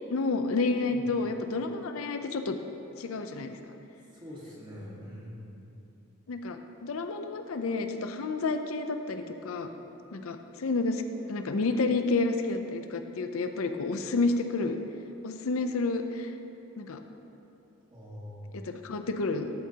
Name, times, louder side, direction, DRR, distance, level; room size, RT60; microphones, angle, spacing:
voice 1, 0.0-2.6 3.0-3.7 6.3-9.7 10.1-11.0 11.3-14.8 15.2-16.3 16.7-17.0 18.5-19.5, left 3 dB, 90° left, 7 dB, 0.5 m, -30 dB
voice 2, 4.2-5.5 17.9-18.5, equal, 20° right, -6 dB, 1.6 m, -43 dB
13.0 x 7.2 x 2.9 m, 2.9 s
head